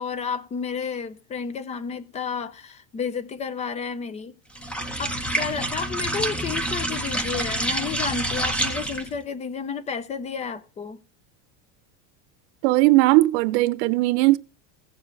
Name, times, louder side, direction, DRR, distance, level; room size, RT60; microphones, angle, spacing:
voice 1, 0.0-4.3 5.0-11.0, left 6 dB, 20° left, 0.5 m, -31 dB
sound 1, 4.5-9.2, right 1 dB, 5° left, 0.9 m, -27 dB
voice 2, 12.6-14.4, right 19 dB, 65° right, 0.8 m, -18 dB
16.0 x 7.2 x 3.3 m
cardioid pair, 160°, 36 cm